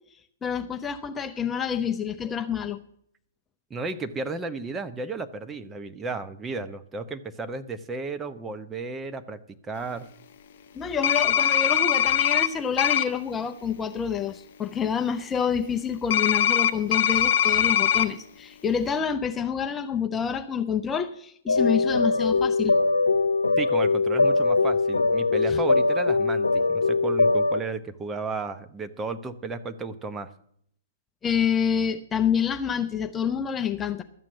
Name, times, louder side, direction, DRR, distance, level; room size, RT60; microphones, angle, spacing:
voice 1, 0.4-2.8 10.7-22.8 25.5-25.6 31.2-34.0, left 7 dB, 15° left, 0.6 m, -27 dB
voice 2, 3.7-10.1 23.6-30.3, right 3 dB, 15° right, 0.9 m, -33 dB
sound 1, 11.0-12.5 12.8-13.0 16.1-18.1, left 9 dB, 50° left, 0.8 m, -21 dB
sound 2, 21.5-27.6, left 3 dB, 85° left, 0.9 m, -22 dB
12.5 x 7.5 x 7.1 m
figure-of-eight pair, 120°, 0 cm